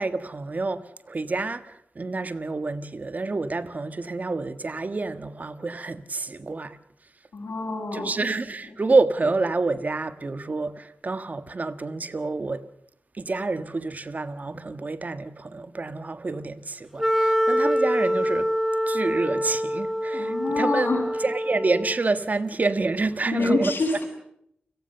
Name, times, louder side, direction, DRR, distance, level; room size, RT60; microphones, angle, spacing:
voice 1, 0.0-6.8 7.9-12.6 13.1-18.5 18.9-20.9 21.2-23.7, right 3 dB, 45° right, 1.5 m, -28 dB
voice 2, 7.3-8.1 20.1-21.1 23.3-24.0, left 3 dB, 70° left, 7.0 m, -26 dB
Wind instrument woodwind instrument, 17.0-22.1, equal, ahead, 0.9 m, -25 dB
29.5 x 18.0 x 6.8 m
wide cardioid pair, 85°, 4 cm